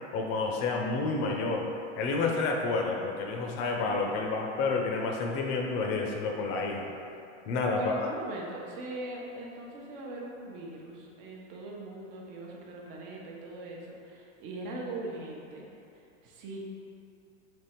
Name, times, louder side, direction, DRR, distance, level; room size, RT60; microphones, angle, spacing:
voice 1, 0.1-1.7 2.0-6.9 7.5-8.1, left 3 dB, 40° left, 1 dB, 0.6 m, -29 dB
voice 2, 7.7-15.7 15.9-16.6, right 2 dB, 50° right, -2 dB, 0.9 m, -41 dB
3.5 x 3.1 x 4.4 m, 2.6 s
supercardioid pair, 140°, 36 cm